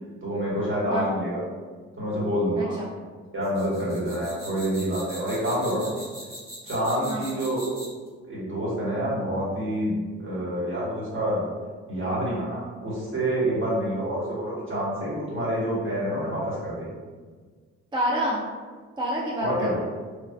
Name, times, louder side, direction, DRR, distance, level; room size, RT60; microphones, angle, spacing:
voice 1, 0.2-1.4 2.0-2.7 3.3-5.9 6.6-7.8 8.2-11.4 11.9-16.9 19.4-19.8, equal, 40° right, -7 dB, 1.4 m, -27 dB
voice 2, 2.6-2.9 7.1-7.3 17.9-18.4 19.0-19.8, equal, 15° right, -3 dB, 0.3 m, -28 dB
sound 1, 3.4-8.1, equal, 70° right, 1.4 m, -41 dB
3.2 x 2.3 x 2.3 m, 1.5 s
cardioid pair, 90°, 30 cm